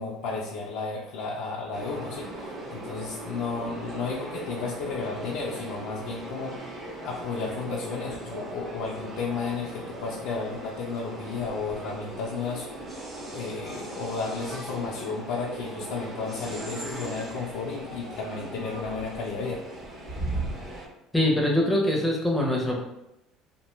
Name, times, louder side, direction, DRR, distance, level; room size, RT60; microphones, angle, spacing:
voice 1, 0.0-6.7 7.0-12.7 13.3-19.6, left 4 dB, 80° left, -4 dB, 0.4 m, -33 dB
sound 1, 1.7-20.9, right 2 dB, 25° right, 0.8 m, -38 dB
voice 2, 21.1-22.8, left 1 dB, 5° left, -1 dB, 0.6 m, -23 dB
2.6 x 2.2 x 3.0 m, 0.87 s
cardioid pair, 120°, 0 cm